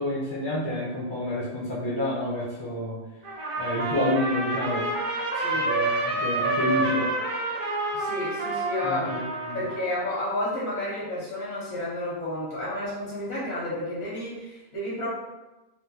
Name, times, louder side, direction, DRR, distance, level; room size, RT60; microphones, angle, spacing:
voice 1, 0.0-3.0 3.6-4.8 5.5-7.1 8.8-9.6, left 1 dB, 35° left, -5 dB, 0.4 m, -29 dB
Trumpet, 3.2-10.0, right 2 dB, 75° right, 1.1 m, -28 dB
voice 2, 5.3-5.7 7.9-9.1 9.5-15.1, left 1 dB, 65° left, -7 dB, 1.6 m, -31 dB
3.6 x 2.2 x 2.8 m, 1.0 s
omnidirectional pair, 1.5 m